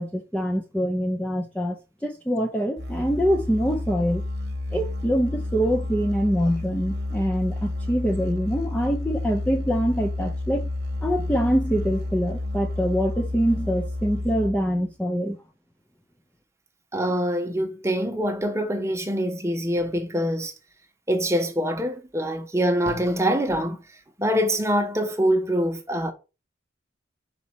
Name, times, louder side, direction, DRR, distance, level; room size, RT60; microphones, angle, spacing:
voice 1, 0.0-4.2 4.7-10.7 11.0-15.4, equal, 5° left, 0.6 m, -24 dB
Musical instrument, 2.8-14.8, left 2 dB, 55° right, 1.1 m, -30 dB
voice 2, 16.9-20.5 21.1-23.8 24.2-26.1, equal, 15° right, 1.0 m, -24 dB
5.6 x 4.3 x 5.5 m
head